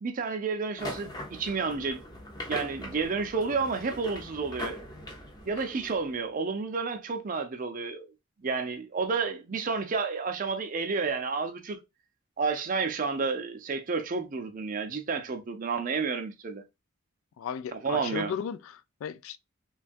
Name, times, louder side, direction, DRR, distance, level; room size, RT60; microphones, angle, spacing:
voice 1, 0.0-2.0 2.5-4.8 5.5-8.1 8.4-11.8 12.4-16.6 17.7-18.3, right 4 dB, 40° right, 0.5 m, -31 dB
sound 1, 0.8-6.2, left 1 dB, 20° left, 0.6 m, -41 dB
voice 2, 17.4-19.4, left 7 dB, 80° left, 0.3 m, -35 dB
3.2 x 2.3 x 2.5 m
head